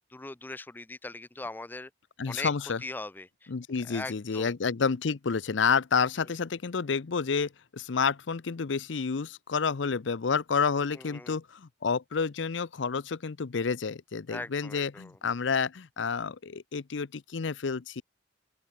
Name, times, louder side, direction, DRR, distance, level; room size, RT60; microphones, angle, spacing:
voice 1, 0.1-1.9 2.3-2.5 2.8-3.5 3.8-4.5 10.9-11.4 14.3-15.2, left 2 dB, 10° left, 0.4 m, -40 dB
voice 2, 2.2-2.8 3.5-18.0, left 5 dB, 75° left, 0.6 m, -29 dB
open air
head